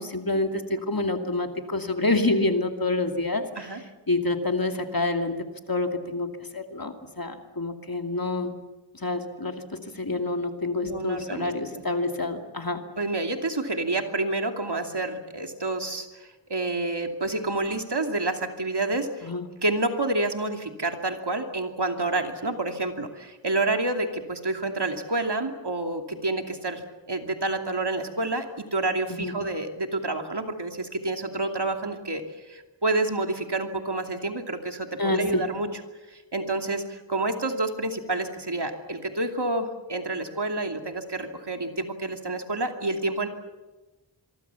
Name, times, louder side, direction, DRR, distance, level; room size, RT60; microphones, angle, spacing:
voice 1, 0.0-8.6 8.9-12.8 19.2-19.5 29.1-29.4 35.0-35.5, left 2 dB, 50° left, 5 dB, 2.5 m, -28 dB
voice 2, 10.8-11.8 13.0-19.3 19.6-35.7 36.1-43.3, right 2 dB, 60° right, 5 dB, 2.7 m, -29 dB
26.0 x 23.5 x 7.1 m, 1.1 s
wide cardioid pair, 50°, 44 cm